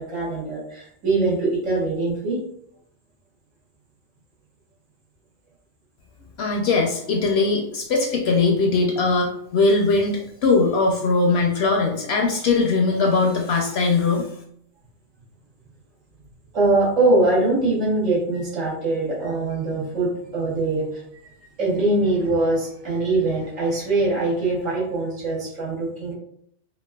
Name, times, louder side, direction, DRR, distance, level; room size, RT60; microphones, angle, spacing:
voice 1, 0.0-2.4 16.5-21.3 21.6-26.1, right 2 dB, 80° right, -7 dB, 1.7 m, -22 dB
voice 2, 6.4-14.3, left 3 dB, 65° left, 0 dB, 0.7 m, -20 dB
4.0 x 2.2 x 2.2 m, 0.69 s
omnidirectional pair, 1.3 m